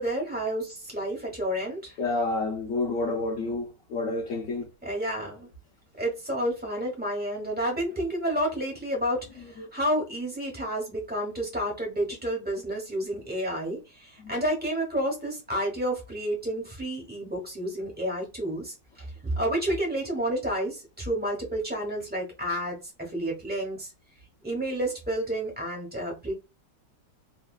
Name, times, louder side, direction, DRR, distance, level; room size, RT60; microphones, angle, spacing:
voice 1, 0.0-2.0 4.8-5.5 6.0-23.9 24.4-26.3, right 1 dB, 10° right, 0.4 m, -30 dB
voice 2, 2.0-4.7 9.6-9.7 14.2-14.3, left 2 dB, 65° left, 0.8 m, -29 dB
3.1 x 2.2 x 2.3 m
omnidirectional pair, 1.9 m